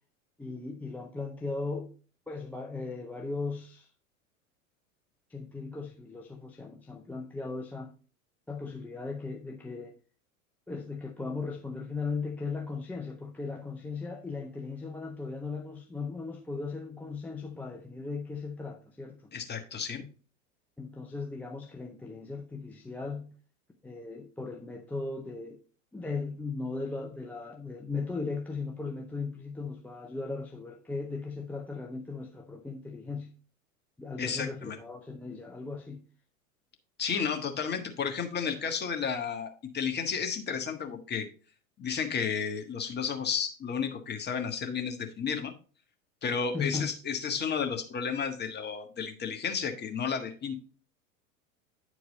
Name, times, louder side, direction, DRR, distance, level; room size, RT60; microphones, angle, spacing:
voice 1, 0.4-2.0 2.3-3.9 5.3-7.9 8.5-10.0 10.7-19.3 20.0-20.1 20.8-23.3 23.8-25.6 25.9-33.3 34.0-36.1 46.5-46.9, left 4 dB, 5° left, 0.5 m, -37 dB
voice 2, 19.3-20.0 34.2-34.8 37.0-41.3 41.8-45.5 46.2-50.5, left 6 dB, 25° left, 1.5 m, -32 dB
9.6 x 4.7 x 4.1 m
hypercardioid pair, 90°, 42 cm